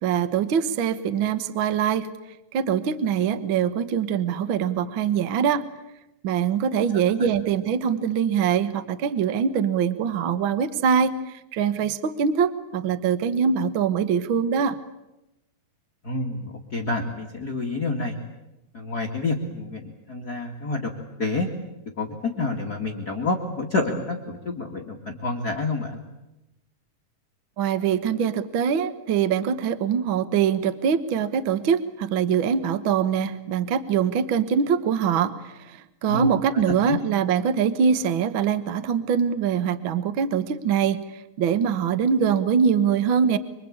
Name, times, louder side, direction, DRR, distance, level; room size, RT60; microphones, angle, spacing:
voice 1, 0.0-2.1 2.5-5.6 6.2-14.8 27.6-43.4, right 7 dB, 55° right, 12 dB, 1.4 m, -23 dB
voice 2, 16.0-18.2 18.7-20.9 21.2-21.5 22.0-26.0 36.1-36.3 36.9-37.0, left 2 dB, 35° left, 2 dB, 2.2 m, -28 dB
25.0 x 25.0 x 8.7 m, 0.95 s
omnidirectional pair, 3.8 m